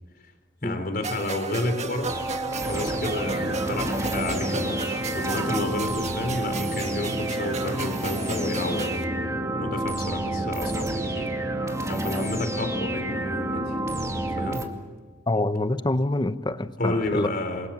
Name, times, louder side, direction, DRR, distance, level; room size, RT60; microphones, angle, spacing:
voice 1, 0.6-2.2 2.7-8.9 9.6-11.4 11.9-13.7 14.4-14.6 16.8-17.7, left 2 dB, 50° left, 3.9 m, -30 dB
sound 1, 1.0-9.0, right 3 dB, 35° right, 1.6 m, -35 dB
sound 2, 2.1-14.7, right 1 dB, 15° right, 2.3 m, -29 dB
voice 2, 15.3-17.3, left 2 dB, 25° left, 0.9 m, -26 dB
28.5 x 23.5 x 7.4 m
head